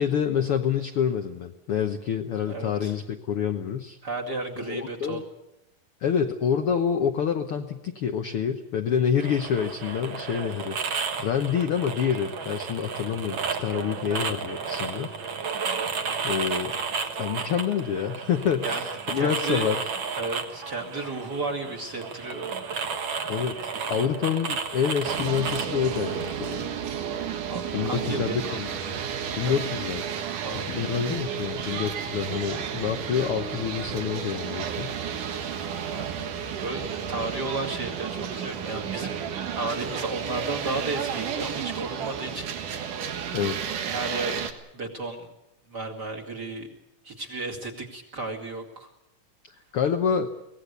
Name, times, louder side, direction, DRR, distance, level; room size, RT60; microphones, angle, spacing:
voice 1, 0.0-4.0 4.7-5.2 6.0-15.1 16.2-16.7 17.2-19.8 23.3-26.6 27.7-28.8 29.4-30.0 30.6-35.0 43.3-43.7 49.5-50.3, left 8 dB, 65° left, 5 dB, 1.5 m, -27 dB
voice 2, 2.4-3.0 4.0-5.2 18.6-18.8 19.1-19.7 20.2-22.5 23.7-24.1 27.5-29.0 29.4-29.6 30.4-30.7 35.9-36.1 36.6-39.2 39.5-42.5 43.9-44.4 44.7-45.3 45.7-46.7 47.0-48.9, right 2 dB, 35° right, 0 dB, 2.6 m, -33 dB
sound 1, 9.2-26.7, right 5 dB, 50° right, 1.8 m, -33 dB
sound 2, 25.0-44.5, right 8 dB, 75° right, 3.1 m, -32 dB
23.5 x 18.0 x 8.2 m, 0.87 s
omnidirectional pair, 3.7 m